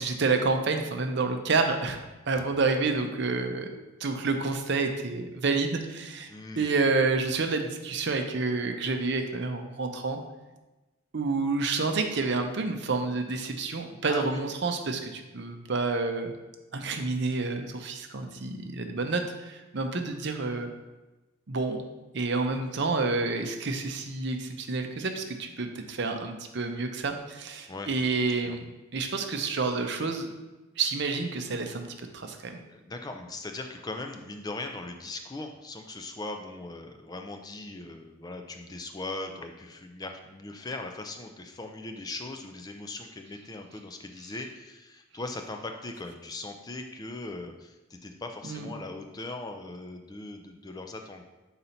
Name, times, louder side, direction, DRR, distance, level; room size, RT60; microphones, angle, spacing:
voice 1, 0.0-2.0 2.3-3.7 4.0-6.3 6.6-10.2 11.1-16.3 16.7-20.7 21.5-21.8 22.1-28.6 28.9-30.3 30.8-31.9 32.1-32.6 48.4-48.7, right 3 dB, 55° right, 5 dB, 0.6 m, -29 dB
voice 2, 6.3-6.7 14.1-14.4 27.7-27.9 28.4-28.6 32.7-51.2, left 2 dB, 20° left, 5 dB, 0.4 m, -39 dB
5.4 x 4.0 x 4.3 m, 1.1 s
head